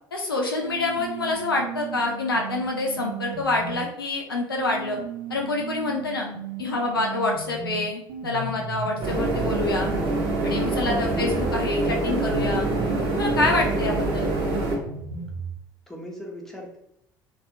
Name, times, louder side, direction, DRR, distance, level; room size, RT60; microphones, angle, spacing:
voice 1, 0.1-5.0 5.3-6.3 6.6-9.9 10.4-14.3, left 2 dB, 85° left, 0 dB, 0.4 m, -27 dB
sound 1, 0.6-3.9 4.6-11.6 12.1-15.6, right 4 dB, 65° right, 0.5 m, -36 dB
sound 2, 9.0-14.8, right 2 dB, 50° right, 1.2 m, -25 dB
voice 2, 15.9-16.8, equal, 5° left, -2 dB, 0.8 m, -40 dB
2.6 x 2.2 x 2.6 m, 0.76 s
figure-of-eight pair, 60°, 12 cm